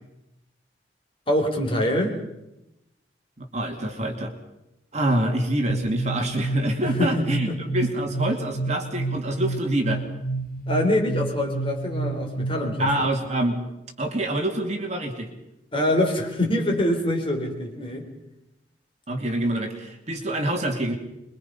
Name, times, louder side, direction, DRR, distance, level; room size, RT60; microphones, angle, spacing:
voice 1, 1.3-2.2 6.8-7.6 10.7-12.9 15.7-18.1, left 1 dB, 30° left, 2 dB, 4.2 m, -24 dB
voice 2, 3.4-4.3 4.9-10.0 12.8-13.6 14.0-15.3 19.1-21.0, right 1 dB, 40° right, 3 dB, 2.6 m, -26 dB
sound 1, 5.7-13.3, right 3 dB, 50° left, 1.4 m, -30 dB
25.5 x 23.0 x 5.6 m, 0.89 s
head